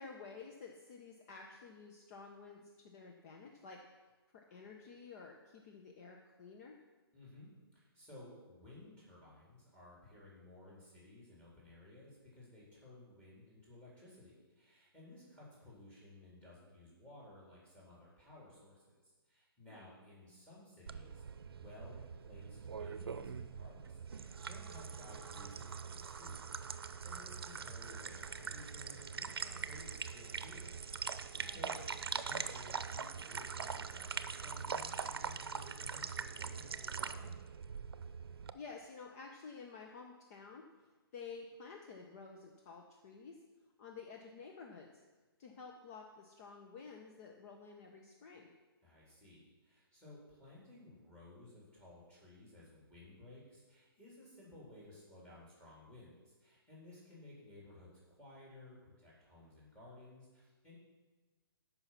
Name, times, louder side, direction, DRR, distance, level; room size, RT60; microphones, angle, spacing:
voice 1, 0.0-3.8 4.3-6.8 19.7-19.9 31.3-31.7 38.5-43.4 43.8-44.9 45.4-48.5, left 5 dB, 40° left, 1 dB, 1.1 m, -52 dB
voice 2, 7.1-30.7 31.4-31.8 32.2-37.4 48.8-60.8, left 2 dB, 10° left, -6 dB, 4.2 m, -57 dB
sound 1, 20.9-38.5, right 6 dB, 70° right, 0.7 m, -43 dB
14.0 x 5.7 x 6.0 m, 1.2 s
hypercardioid pair, 140°, 13 cm